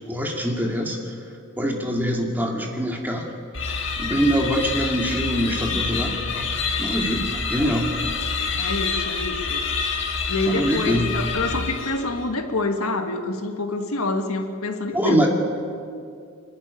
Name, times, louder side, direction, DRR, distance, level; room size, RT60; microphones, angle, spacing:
voice 1, 0.1-1.0 1.6-3.2 4.0-6.5 6.8-7.9 10.5-11.1 14.9-15.3, equal, 10° right, 0 dB, 2.2 m, -24 dB
sound 1, 3.5-12.2, left 5 dB, 60° left, 2.0 m, -27 dB
voice 2, 8.6-9.6 10.3-15.3, left 2 dB, 80° left, 5 dB, 1.7 m, -27 dB
26.0 x 11.0 x 9.7 m, 2.4 s
head